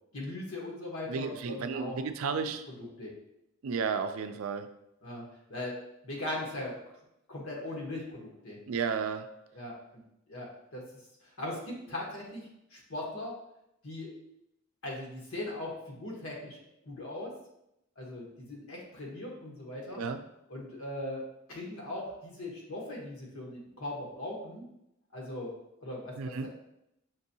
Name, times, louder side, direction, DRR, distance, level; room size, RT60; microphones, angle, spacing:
voice 1, 0.1-2.1 2.4-3.1 5.0-5.8 6.0-6.8 7.3-8.6 9.5-10.0 10.3-10.8 11.4-13.3 13.8-14.1 14.8-16.6 16.8-17.3 18.0-20.0 20.5-24.6 25.1-25.5 25.8-26.5, left 1 dB, 85° left, -2 dB, 1.3 m, -39 dB
voice 2, 1.1-2.6 3.6-4.7 8.7-9.3 19.9-20.2 26.2-26.5, right 5 dB, 80° right, 9 dB, 0.4 m, -33 dB
5.9 x 2.7 x 2.7 m, 0.83 s
head